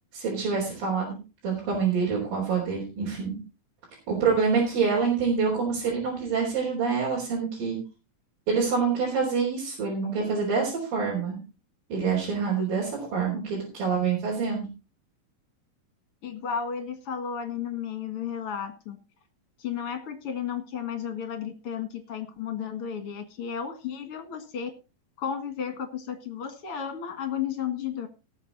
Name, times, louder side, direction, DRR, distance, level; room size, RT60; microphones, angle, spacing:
voice 1, 0.1-1.2 1.4-3.3 4.1-7.8 8.5-11.4 11.9-14.6, right 5 dB, 65° right, -4 dB, 5.7 m, -26 dB
voice 2, 16.2-19.0 19.6-24.7 25.2-28.1, left 8 dB, 45° left, 8 dB, 2.3 m, -33 dB
18.5 x 7.4 x 4.1 m, 0.30 s
omnidirectional pair, 4.3 m